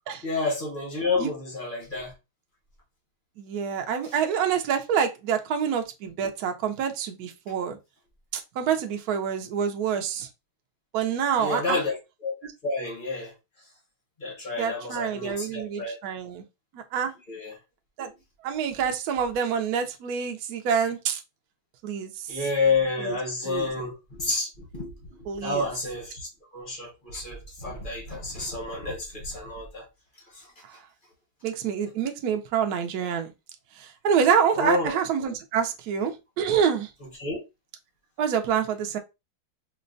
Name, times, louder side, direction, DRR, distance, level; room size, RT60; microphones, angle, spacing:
voice 1, 0.2-2.1 11.4-12.0 12.2-12.3 12.6-13.3 14.2-16.0 17.3-17.5 22.3-24.9 25.4-26.3 26.5-29.8 34.6-34.9 37.2-37.4, left 3 dB, 45° left, 0.7 m, -29 dB
voice 2, 3.4-7.8 8.3-10.3 10.9-11.8 12.4-12.5 14.6-16.4 16.7-17.2 18.0-18.1 18.4-21.2 21.8-22.4 23.0-23.2 23.4-23.7 25.3-25.6 31.4-33.3 33.8-36.9 38.2-39.0, right 7 dB, 75° right, 0.9 m, -27 dB
4.5 x 2.1 x 2.6 m
omnidirectional pair, 2.3 m